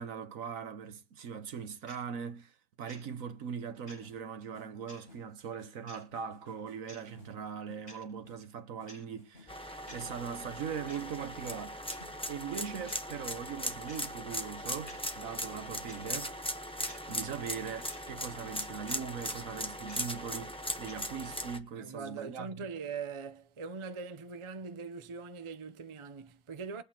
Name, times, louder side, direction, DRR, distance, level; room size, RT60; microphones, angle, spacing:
voice 1, 0.0-11.8 12.3-16.3 17.1-22.5, right 7 dB, 65° right, 1.4 m, -40 dB
sound 1, 1.9-2.0 2.9-3.0 3.9-4.0 4.9-5.0 5.9-6.0 6.9-7.0 7.9-8.0 8.9-9.0 9.9-10.0 10.9-11.0 11.9-12.0 12.9-13.0 13.9-14.0 14.9-15.0 15.9-16.0 16.9-17.0 17.9-18.0 18.9-19.0 19.9-20.1 20.9-21.0, equal, 20° left, 7.6 m, -51 dB
sound 2, 4.0-12.5, left 3 dB, 55° left, 5.7 m, -59 dB
sound 3, 9.5-21.6, equal, 5° left, 0.9 m, -39 dB
voice 2, 21.7-26.8, right 5 dB, 35° right, 0.5 m, -41 dB
22.0 x 8.6 x 2.9 m
omnidirectional pair, 1.5 m